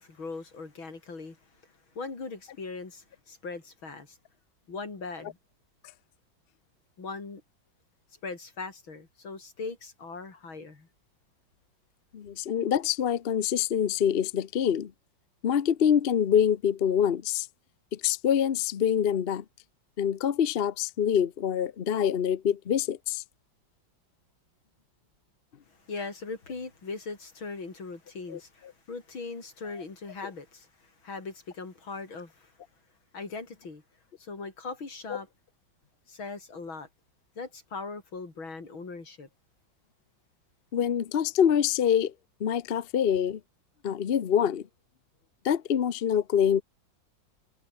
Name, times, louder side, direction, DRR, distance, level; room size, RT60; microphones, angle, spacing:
voice 1, 0.0-1.4 1.6-4.2 4.7-5.4 7.0-7.4 8.2-10.9 25.7-32.5 33.1-33.8 34.2-35.3 36.1-36.9 37.4-39.3, left 4 dB, 80° left, 5.1 m, -40 dB
voice 2, 12.1-14.9 15.4-17.5 18.0-19.4 20.0-23.2 28.3-28.4 35.1-35.2 40.7-42.1 42.4-43.4 43.8-44.6 45.4-46.6, left 8 dB, 50° left, 0.7 m, -25 dB
omnidirectional pair, 2.2 m